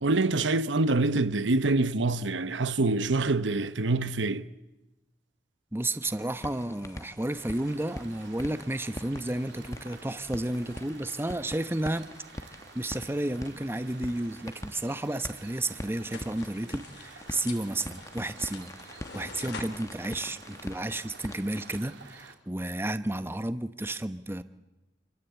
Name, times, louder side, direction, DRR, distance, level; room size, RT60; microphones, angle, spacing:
voice 1, 0.0-4.5, right 2 dB, 90° right, 1.0 m, -25 dB
voice 2, 5.7-12.1 12.5-24.4, right 1 dB, 15° right, 0.9 m, -32 dB
sound 1, 6.0-21.8, left 1 dB, 20° left, 1.1 m, -44 dB
sound 2, 7.3-22.3, right 4 dB, 70° right, 3.0 m, -51 dB
sound 3, 16.0-21.3, left 4 dB, 65° left, 3.1 m, -47 dB
27.0 x 26.0 x 8.3 m
head